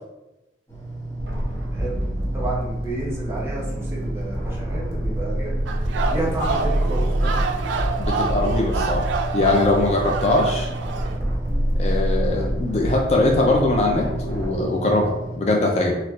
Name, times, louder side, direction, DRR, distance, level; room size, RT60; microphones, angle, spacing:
sound 1, 0.7-15.4, right 2 dB, 20° left, 1.0 m, -34 dB
sound 2, 1.2-14.5, equal, 60° right, 0.9 m, -27 dB
voice 1, 2.3-5.5 6.1-7.4 12.4-12.5, right 2 dB, 15° right, -6 dB, 0.8 m, -31 dB
sound 3, 5.7-11.2, right 4 dB, 90° right, 0.3 m, -28 dB
voice 2, 8.0-9.1 9.3-10.7 11.8-16.0, left 2 dB, 35° left, 0 dB, 0.3 m, -21 dB
4.3 x 2.3 x 2.3 m, 0.94 s
head